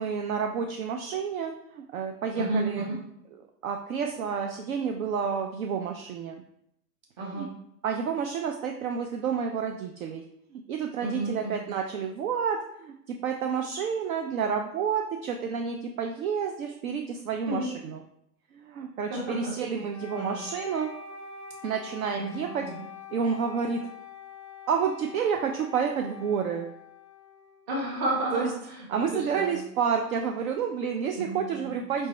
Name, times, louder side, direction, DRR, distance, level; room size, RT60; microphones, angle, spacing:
voice 1, 0.0-2.8 3.6-6.4 7.3-7.5 7.8-10.2 10.5-18.0 18.5-20.9 21.6-22.7 23.1-23.8 24.7-26.7 28.3-28.5 28.9-32.1, right 6 dB, 60° right, 4 dB, 0.5 m, -30 dB
voice 2, 2.3-2.9 7.2-7.5 11.0-11.6 17.5-17.7 19.1-19.5 20.1-20.4 22.1-22.8 27.7-29.6 31.1-31.7, right 1 dB, 40° right, -3 dB, 1.4 m, -32 dB
Wind instrument woodwind instrument, 19.9-27.9, left 7 dB, ahead, 0.5 m, -45 dB
4.2 x 3.2 x 3.2 m, 0.75 s
hypercardioid pair, 120°, 49 cm